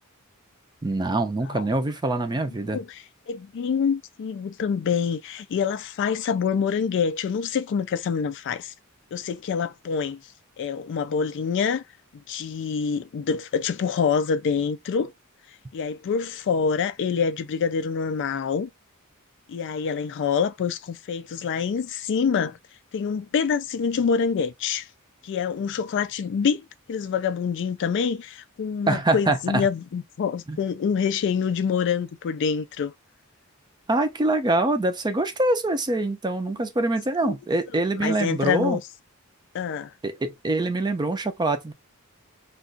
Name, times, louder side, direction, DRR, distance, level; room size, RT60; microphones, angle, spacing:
voice 1, 0.8-2.8 28.9-29.6 30.5-30.6 33.9-38.8 40.0-41.7, right 2 dB, 20° right, 0.5 m, -24 dB
voice 2, 2.7-8.7 9.1-10.2 10.6-11.8 12.3-15.1 15.7-18.7 19.5-22.6 22.9-24.9 25.2-26.6 26.9-32.9 37.2-37.3 38.0-38.8 39.5-39.9, left 6 dB, 55° left, 0.3 m, -26 dB
2.4 x 2.3 x 3.7 m
head